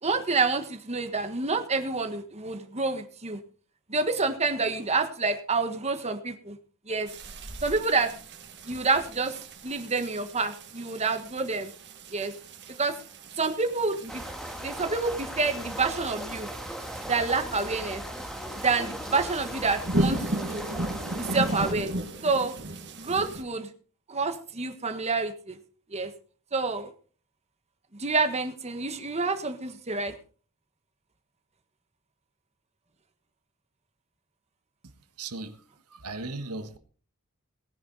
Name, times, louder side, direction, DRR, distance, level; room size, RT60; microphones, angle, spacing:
voice 1, 0.0-3.4 3.9-6.6 6.9-7.1 7.6-8.1 8.7-11.7 12.1-12.3 12.8-13.0 13.4-14.2 14.6-16.5 17.0-18.0 18.6-20.7 21.1-21.9 22.2-22.5 23.0-23.7 24.1-25.6 25.9-26.1 26.5-26.9 28.0-30.1, right 4 dB, 30° right, 7 dB, 1.4 m, -28 dB
sound 1, 7.1-23.4, right 1 dB, 55° right, 2.1 m, -36 dB
sound 2, 14.1-21.7, equal, ahead, 1.8 m, -38 dB
voice 2, 35.2-36.8, right 3 dB, 90° right, 9 dB, 1.5 m, -37 dB
18.5 x 10.5 x 4.1 m, 0.40 s
head